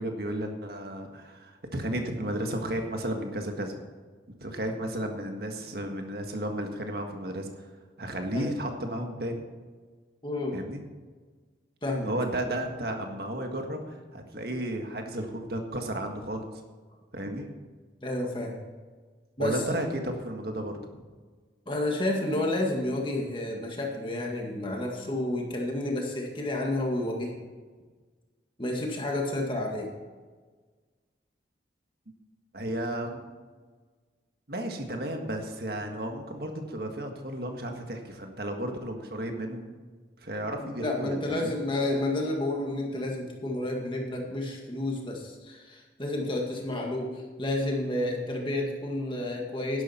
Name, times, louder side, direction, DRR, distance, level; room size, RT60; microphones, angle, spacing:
voice 1, 0.0-3.7 4.4-7.5 8.0-9.4 10.5-10.8 12.0-16.5 17.1-17.5 19.4-21.0 32.5-33.2 34.5-39.7 40.2-41.5, right 1 dB, 55° right, 4 dB, 1.7 m, -33 dB
voice 2, 10.2-10.6 11.8-12.1 18.0-18.5 19.4-19.6 21.7-27.3 28.6-29.9 40.6-49.8, left 1 dB, 25° left, 0 dB, 1.9 m, -30 dB
11.5 x 11.5 x 4.4 m, 1.4 s
head